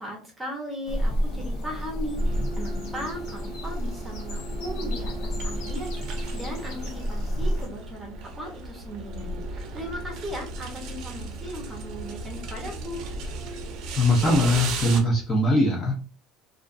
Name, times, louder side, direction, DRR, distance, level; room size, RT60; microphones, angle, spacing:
voice 1, 0.0-13.0, equal, 10° right, -1 dB, 0.9 m, -37 dB
sound 1, 0.8-7.7, equal, 70° left, 0.7 m, -30 dB
sound 2, 2.2-15.0, right 3 dB, 55° right, 0.5 m, -36 dB
voice 2, 14.0-15.9, left 1 dB, 25° left, -2 dB, 0.6 m, -21 dB
2.5 x 2.4 x 2.4 m, 0.36 s
cardioid pair, 150°, 0 cm